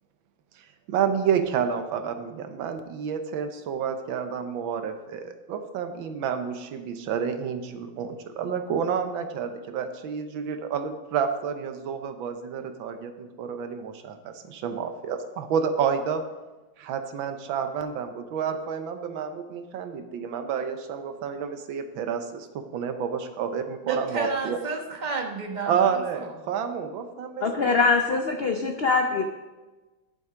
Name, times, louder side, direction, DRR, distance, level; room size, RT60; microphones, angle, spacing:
voice 1, 0.5-16.2 16.8-24.6 25.7-27.8, right 7 dB, 85° right, 8 dB, 1.6 m, -29 dB
voice 2, 23.8-26.0, right 4 dB, 30° right, 2 dB, 1.0 m, -30 dB
voice 3, 27.4-29.2, left 4 dB, 65° left, 3 dB, 0.6 m, -23 dB
11.0 x 7.0 x 5.0 m, 1.2 s
omnidirectional pair, 2.1 m